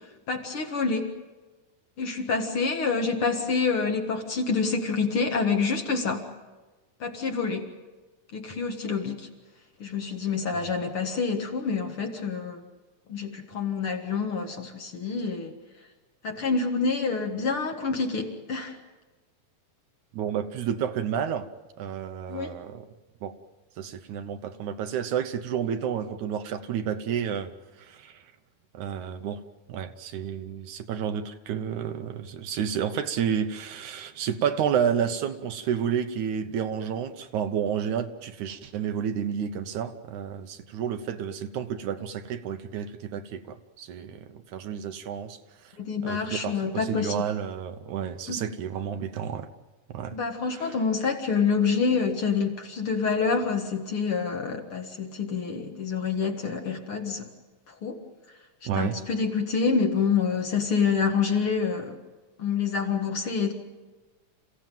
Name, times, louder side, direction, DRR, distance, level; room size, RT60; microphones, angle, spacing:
voice 1, 0.3-1.1 2.0-6.2 7.0-7.7 8.3-9.3 9.8-12.6 13.1-15.5 16.2-18.8 22.3-22.5 45.8-47.2 48.3-48.4 50.1-57.3 57.8-58.0 58.8-62.0 62.4-63.5, left 5 dB, 50° left, 4 dB, 2.2 m, -27 dB
voice 2, 20.1-21.5 21.8-22.8 23.2-23.4 23.8-27.5 27.8-28.2 28.7-29.4 29.7-45.7 46.0-49.5 49.9-50.2 50.5-50.8 58.7-59.0, right 8 dB, 75° right, 8 dB, 2.2 m, -30 dB
28.5 x 16.0 x 9.2 m, 1.2 s
omnidirectional pair, 3.7 m